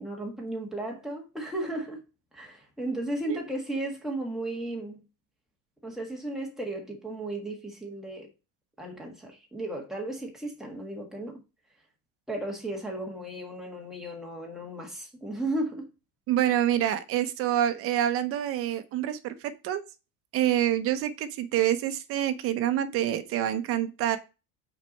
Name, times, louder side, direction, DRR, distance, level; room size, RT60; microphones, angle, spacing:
voice 1, 0.0-2.0 2.3-5.0 5.8-8.3 8.8-11.4 12.3-15.9, right 1 dB, ahead, 1.5 m, -35 dB
voice 2, 16.3-19.8 20.3-24.2, right 11 dB, 35° right, 0.7 m, -27 dB
6.0 x 4.5 x 5.2 m
cardioid pair, 165°, 38 cm